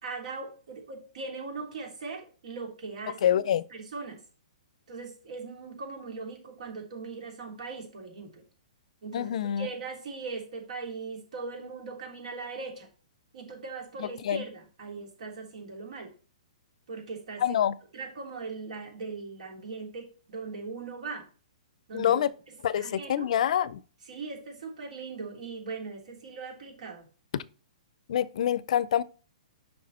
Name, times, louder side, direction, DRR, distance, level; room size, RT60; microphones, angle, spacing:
voice 1, 0.0-3.4 3.7-4.2 4.9-8.4 9.0-12.9 13.3-16.1 16.9-17.6 17.9-21.2 21.9-22.2 22.8-23.3 24.1-27.1, right 4 dB, 70° right, 3.4 m, -39 dB
voice 2, 3.2-3.6 9.1-9.7 14.0-14.4 17.4-17.8 21.9-22.3 22.6-23.8 27.3-27.4 28.1-29.0, left 10 dB, 60° left, 0.5 m, -26 dB
7.8 x 5.7 x 4.3 m
hypercardioid pair, 150°, 4 cm